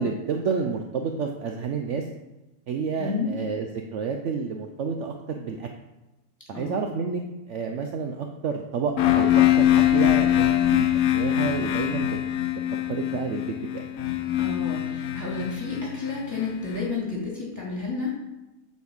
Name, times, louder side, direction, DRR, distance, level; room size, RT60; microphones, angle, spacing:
voice 1, 0.0-2.0 2.7-5.7 6.5-7.2 7.5-10.9 11.1-12.2 12.9-13.9, right 5 dB, 60° right, 4 dB, 0.9 m, -30 dB
voice 2, 3.0-3.3 6.5-6.9 14.4-18.1, left 4 dB, 10° left, -4 dB, 2.5 m, -31 dB
sound 1, 9.0-16.8, left 12 dB, 80° left, 1.2 m, -23 dB
8.2 x 4.3 x 7.1 m, 1.0 s
omnidirectional pair, 1.6 m